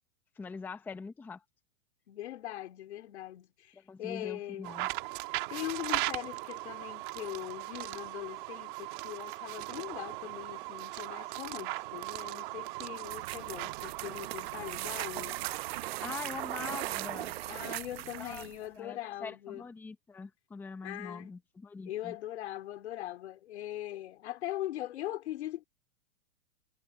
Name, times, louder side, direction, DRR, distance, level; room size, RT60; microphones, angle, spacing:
voice 1, 0.4-1.4 3.7-4.9 16.0-17.3 18.2-18.5 18.8-22.1, left 5 dB, 5° left, 0.7 m, -43 dB
voice 2, 2.1-4.7 5.5-15.4 17.5-19.6 20.8-21.3 21.9-25.6, left 14 dB, 75° left, 3.3 m, -41 dB
sound 1, 4.6-17.3, right 21 dB, 45° right, 2.0 m, -39 dB
sound 2, 13.0-18.6, right 15 dB, 60° right, 1.0 m, -39 dB
supercardioid pair, 160°, 34 cm